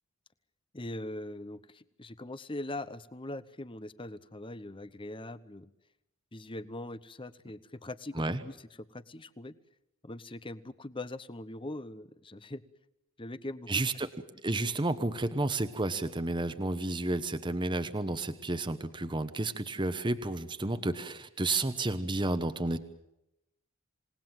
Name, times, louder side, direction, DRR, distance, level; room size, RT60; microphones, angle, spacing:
voice 1, 0.7-5.7 6.3-9.6 10.0-12.6 13.2-13.7, left 1 dB, 25° left, 15 dB, 0.9 m, -41 dB
voice 2, 13.7-14.1 14.4-22.8, right 2 dB, 20° right, 10 dB, 1.1 m, -31 dB
27.5 x 19.0 x 7.6 m, 0.86 s
head